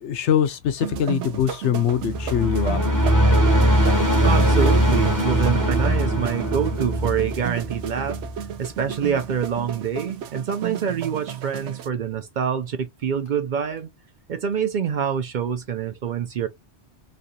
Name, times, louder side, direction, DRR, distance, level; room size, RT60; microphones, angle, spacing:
voice 1, 0.0-2.8, left 9 dB, 90° left, 1.0 m, -23 dB
sound 1, 0.8-11.9, right 9 dB, 85° right, 0.9 m, -33 dB
sound 2, 2.0-8.6, equal, 20° right, 0.9 m, -21 dB
voice 2, 4.2-8.2 8.6-13.9 14.3-16.5, right 7 dB, 60° right, 0.5 m, -26 dB
3.2 x 2.7 x 2.7 m
omnidirectional pair, 1.1 m